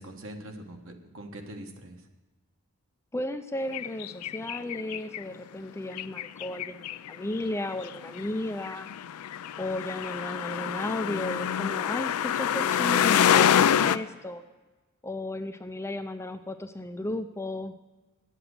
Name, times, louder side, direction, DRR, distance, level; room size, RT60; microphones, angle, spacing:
voice 1, 0.0-2.0, right 1 dB, 60° right, 4 dB, 1.3 m, -43 dB
voice 2, 3.1-8.9 9.6-14.4 15.0-17.7, left 1 dB, 10° left, 8 dB, 0.4 m, -34 dB
sound 1, 3.7-5.2 5.9-7.3 7.6-14.0, left 9 dB, 85° left, 0.4 m, -26 dB
9.0 x 7.8 x 7.9 m, 1.2 s
head